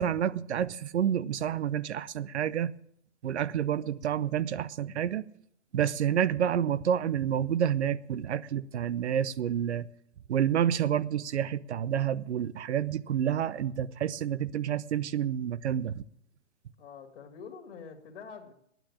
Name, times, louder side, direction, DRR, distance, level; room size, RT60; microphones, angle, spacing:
voice 1, 0.0-2.7 3.2-5.3 5.7-9.9 10.3-16.0, right 9 dB, 65° right, 0.7 m, -29 dB
voice 2, 16.8-18.5, left 6 dB, 55° left, 2.5 m, -46 dB
9.6 x 9.2 x 10.0 m
hypercardioid pair, 145°, 37 cm